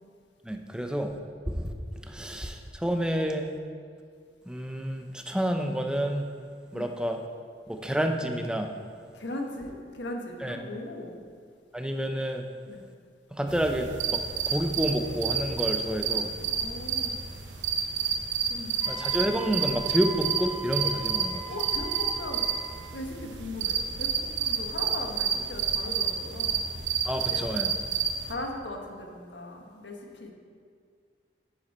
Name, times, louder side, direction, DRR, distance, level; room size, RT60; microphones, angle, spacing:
voice 1, 0.4-1.1 1.5-3.5 4.5-6.3 6.7-7.2 7.7-8.7 10.4-10.6 11.7-12.4 13.3-14.2 14.5-16.3 18.9-21.4 27.0-27.7, equal, 5° right, 4 dB, 0.5 m, -29 dB
voice 2, 9.1-11.2 12.7-12.8 16.4-17.2 18.4-18.9 21.5-22.5 22.9-26.6 27.3-27.7 28.2-30.3, left 1 dB, 80° left, 2 dB, 1.3 m, -38 dB
sound 1, 13.5-28.3, right 7 dB, 85° right, 0.8 m, -30 dB
Wind instrument woodwind instrument, 18.8-22.9, right 4 dB, 45° right, 2.0 m, -40 dB
9.5 x 7.9 x 4.3 m, 2.2 s
head